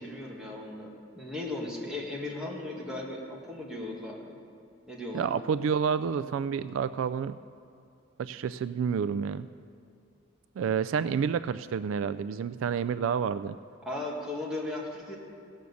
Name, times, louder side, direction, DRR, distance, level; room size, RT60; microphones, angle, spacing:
voice 1, 0.0-4.4 4.9-5.3 11.1-11.2 13.8-15.2, left 2 dB, 5° right, -4 dB, 2.0 m, -37 dB
voice 2, 5.1-7.4 8.2-9.5 10.6-13.6, right 6 dB, 75° right, 15 dB, 0.3 m, -29 dB
16.5 x 6.4 x 7.0 m, 2.4 s
head